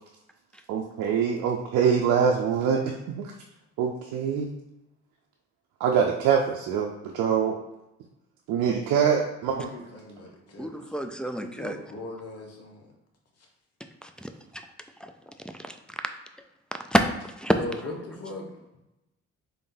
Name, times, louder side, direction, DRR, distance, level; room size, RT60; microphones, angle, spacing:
voice 1, 0.7-3.3 3.8-4.5 5.8-7.6 8.5-9.7, right 7 dB, 85° right, 0 dB, 0.5 m, -24 dB
voice 2, 9.5-10.7 11.0-12.8 17.6-18.6, left 1 dB, 55° left, 1 dB, 1.1 m, -39 dB
voice 3, 10.6-11.8 14.0-14.6 15.0-15.1 15.6-15.7 16.9-17.0 17.4-17.5, equal, 5° left, 5 dB, 0.3 m, -27 dB
3.8 x 2.6 x 3.8 m, 0.93 s
cardioid pair, 90°, 30 cm